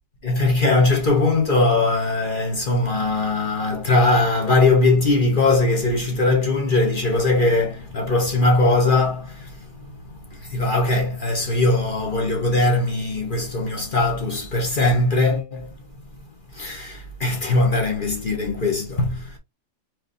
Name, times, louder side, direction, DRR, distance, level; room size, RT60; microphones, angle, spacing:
voice 1, 0.2-15.7 16.5-19.4, left 2 dB, 30° left, 1.2 m, -20 dB
4.9 x 4.0 x 2.6 m
omnidirectional pair, 2.2 m